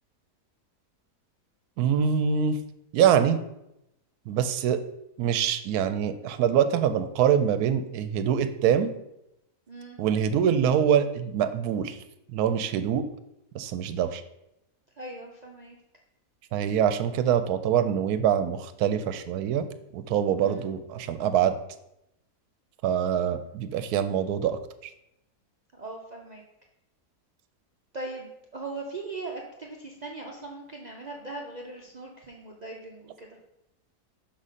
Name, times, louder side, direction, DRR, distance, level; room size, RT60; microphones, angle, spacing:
voice 1, 1.8-2.6 2.9-3.4 4.3-4.8 5.2-8.9 10.0-12.0 12.3-13.1 13.5-14.2 16.5-19.6 19.9-21.5 22.8-24.6, right 8 dB, 80° right, 10 dB, 1.1 m, -24 dB
voice 2, 9.7-10.0 15.0-15.8 20.4-20.7 25.7-26.4 27.9-33.4, right 3 dB, 50° right, -1 dB, 0.5 m, -39 dB
6.0 x 4.2 x 4.9 m, 0.85 s
omnidirectional pair, 1.6 m